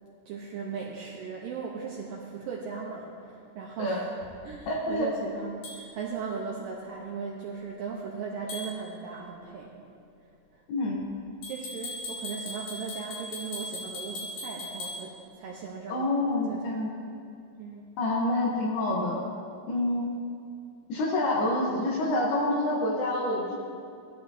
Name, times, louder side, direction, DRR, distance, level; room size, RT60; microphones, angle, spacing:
voice 1, 0.3-4.1 4.4-9.8 10.5-10.6 11.4-16.1 16.5-16.8 17.6-17.9, right 5 dB, 85° right, -2 dB, 2.0 m, -38 dB
voice 2, 4.7-5.1 10.7-11.0 15.9-16.9 18.0-19.2 19.7-20.1 20.9-23.6, left 1 dB, 70° left, -2 dB, 2.9 m, -27 dB
sound 1, 5.6-5.8 8.5-8.7 11.4-15.0, left 1 dB, 55° left, 4.7 m, -38 dB
16.0 x 12.0 x 2.8 m, 2.4 s
omnidirectional pair, 5.0 m